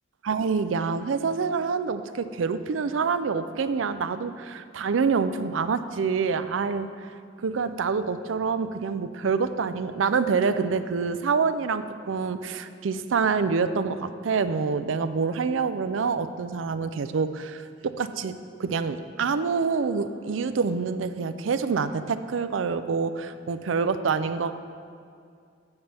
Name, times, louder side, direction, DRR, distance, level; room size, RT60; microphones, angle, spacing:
voice 1, 0.3-6.9 7.4-24.5, right 5 dB, 90° right, 12 dB, 0.5 m, -26 dB
15.0 x 6.8 x 3.4 m, 2.3 s
head